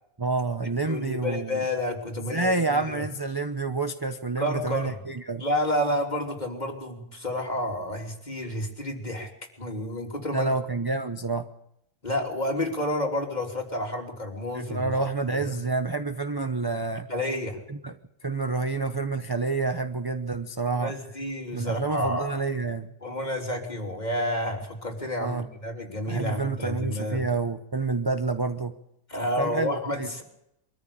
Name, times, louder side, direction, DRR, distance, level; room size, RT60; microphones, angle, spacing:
voice 1, 0.2-1.6 2.2-5.4 10.3-11.5 14.5-17.1 17.7-17.9 18.2-20.9 21.5-22.9 25.2-25.5 26.1-28.7 29.4-30.1, right 3 dB, 20° right, 8 dB, 0.6 m, -28 dB
voice 2, 0.8-3.0 4.4-5.0 5.4-9.3 9.6-10.5 12.0-14.9 15.3-15.6 17.1-17.6 20.7-22.4 23.0-27.3 29.1-30.2, left 1 dB, 25° left, 1 dB, 3.5 m, -30 dB
23.5 x 14.0 x 8.7 m, 0.80 s
omnidirectional pair, 1.7 m